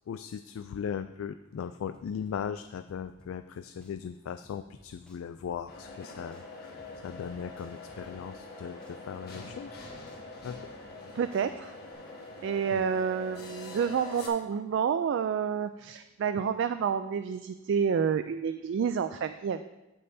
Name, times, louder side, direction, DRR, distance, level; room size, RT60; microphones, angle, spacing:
voice 1, 0.1-6.8 7.0-9.8 10.4-10.6 12.7-12.8, left 7 dB, 90° left, 10 dB, 0.3 m, -38 dB
sound 1, 1.9-3.5 3.8-6.0 6.3-8.5 8.8-11.0 11.3-11.9, equal, 5° left, 0.9 m, -59 dB
sound 2, 5.7-14.3, left 2 dB, 50° left, 1.4 m, -44 dB
voice 2, 11.1-11.7 12.4-19.6, right 7 dB, 65° right, 10 dB, 0.3 m, -29 dB
14.5 x 5.5 x 2.7 m, 0.97 s
head